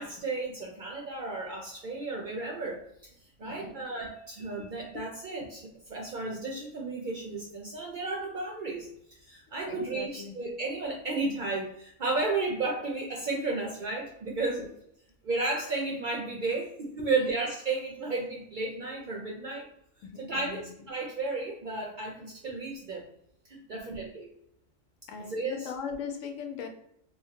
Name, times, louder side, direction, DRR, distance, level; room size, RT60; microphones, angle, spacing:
voice 1, 0.0-3.1 3.4-8.9 9.2-14.6 15.2-19.7 20.2-23.1 23.5-24.3 25.2-25.6, right 3 dB, 60° right, -1 dB, 0.5 m, -33 dB
voice 2, 3.4-3.8 4.6-4.7 4.9-5.0 9.6-10.3 14.6-14.7 17.2-17.3 20.0-20.7 23.7-24.1 25.1-26.7, left 6 dB, 90° left, 5 dB, 1.0 m, -40 dB
3.0 x 2.1 x 2.8 m, 0.73 s
omnidirectional pair, 1.3 m